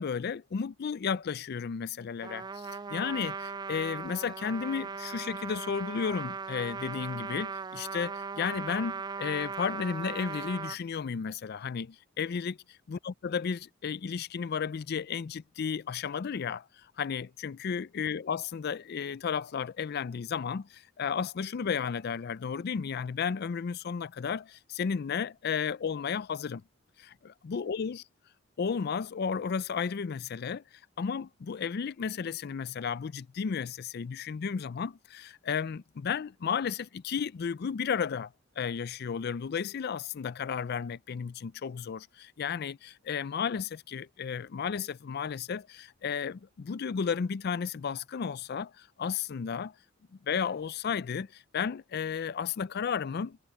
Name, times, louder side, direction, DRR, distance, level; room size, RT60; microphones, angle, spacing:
voice 1, 0.0-12.6 12.9-16.7 17.0-26.6 27.0-28.0 28.6-30.6 31.0-49.7 50.2-53.4, left 6 dB, 55° left, 0.4 m, -33 dB
Trumpet, 2.2-10.8, right 5 dB, 20° right, 0.3 m, -38 dB
head